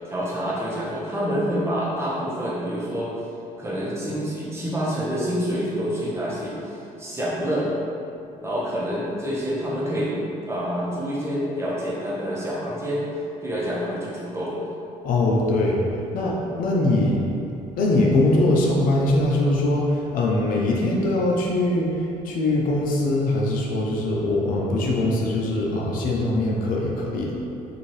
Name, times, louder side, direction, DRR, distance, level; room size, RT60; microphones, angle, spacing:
voice 1, 0.1-3.1 3.6-7.7 8.4-10.2 10.5-13.0 13.4-14.6, equal, 20° right, -6 dB, 1.0 m, -27 dB
voice 2, 15.0-15.8 16.1-17.2 17.8-27.3, left 2 dB, 70° left, -2 dB, 0.6 m, -22 dB
4.2 x 2.7 x 3.2 m, 2.7 s
cardioid pair, 90°, 15 cm